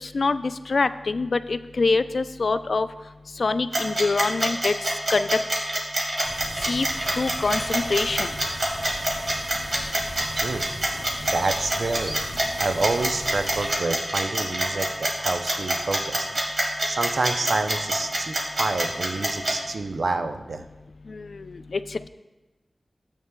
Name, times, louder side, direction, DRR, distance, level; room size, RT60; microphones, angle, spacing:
voice 1, 0.0-2.9 3.4-4.7 5.1-5.4 6.7-6.9 7.2-8.3 21.1-22.1, left 3 dB, 70° left, 12 dB, 0.3 m, -25 dB
sound 1, 3.7-19.5, right 1 dB, 60° right, 1.8 m, -25 dB
sound 2, 6.2-13.7, equal, 25° right, 2.2 m, -38 dB
voice 2, 11.3-12.3 12.6-20.6, right 3 dB, 80° right, 7 dB, 0.5 m, -28 dB
12.5 x 8.2 x 2.2 m, 1.1 s
wide cardioid pair, 75°, 0 cm